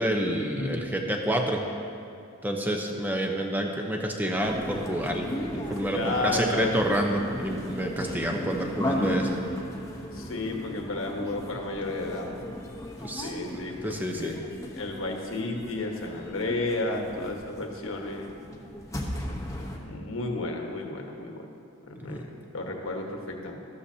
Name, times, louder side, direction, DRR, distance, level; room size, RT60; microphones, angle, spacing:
voice 1, 0.0-1.6 2.4-9.4 13.0-13.3 13.8-14.3 22.0-22.2, right 1 dB, 10° right, 1 dB, 0.8 m, -28 dB
voice 2, 0.6-1.0 5.9-6.7 10.1-12.3 13.2-14.4 14.7-18.4 19.8-21.5 21.9-23.6, left 2 dB, 70° left, 1 dB, 1.2 m, -32 dB
sound 1, 4.4-19.8, left 1 dB, 15° left, 1.0 m, -36 dB
13.5 x 13.0 x 2.8 m, 2.5 s
head